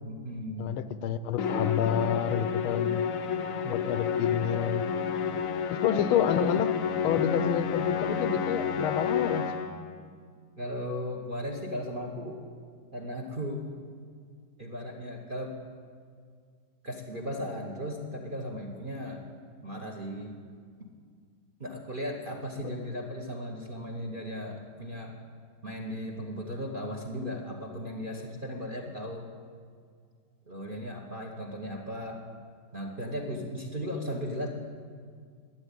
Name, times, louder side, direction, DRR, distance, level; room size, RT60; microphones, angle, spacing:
voice 1, 0.0-0.8 10.6-12.4 12.9-13.7 14.6-15.6 16.8-19.2 19.6-20.4 21.6-25.2 25.6-29.3 30.5-32.2 32.7-34.5, equal, 35° right, 2 dB, 0.8 m, -36 dB
voice 2, 0.6-3.0 3.6-4.8 5.7-6.8 7.0-9.5 22.6-22.7, left 9 dB, 85° left, 13 dB, 1.5 m, -29 dB
Musical instrument, 1.4-9.9, left 7 dB, 65° left, 0.8 m, -30 dB
12.0 x 8.1 x 9.9 m, 2.1 s
omnidirectional pair, 2.3 m